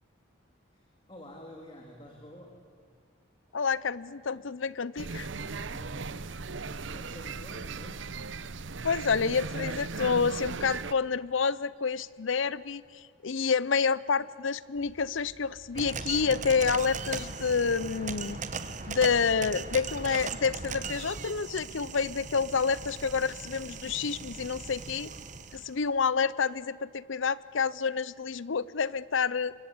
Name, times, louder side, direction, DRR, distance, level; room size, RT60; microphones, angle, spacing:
voice 1, 0.7-2.6 4.3-4.5 5.2-8.2, left 1 dB, 25° left, 1 dB, 2.5 m, -50 dB
voice 2, 3.5-5.3 8.8-18.4 18.9-25.1 25.5-29.5, left 5 dB, 70° left, 19 dB, 0.6 m, -28 dB
sound 1, 5.0-10.9, right 4 dB, 65° right, 0.8 m, -37 dB
sound 2, 14.7-24.8, equal, 55° left, 6.8 m, -57 dB
sound 3, 15.7-25.7, right 4 dB, 35° right, 1.2 m, -39 dB
26.5 x 23.5 x 8.5 m, 2.1 s
head